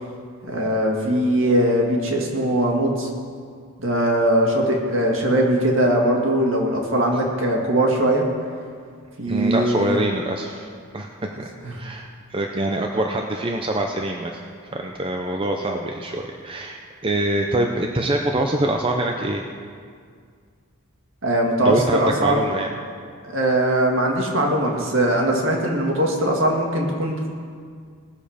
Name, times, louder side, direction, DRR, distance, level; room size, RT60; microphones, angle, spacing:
voice 1, 0.4-3.1 3.8-8.2 9.2-10.0 11.6-11.7 21.2-22.4 23.2-27.3, right 1 dB, 60° right, 0 dB, 2.0 m, -20 dB
voice 2, 9.3-10.7 10.9-14.4 14.7-19.4 21.6-22.7, right 1 dB, 25° right, 2 dB, 0.6 m, -25 dB
19.0 x 7.2 x 5.0 m, 2.1 s
head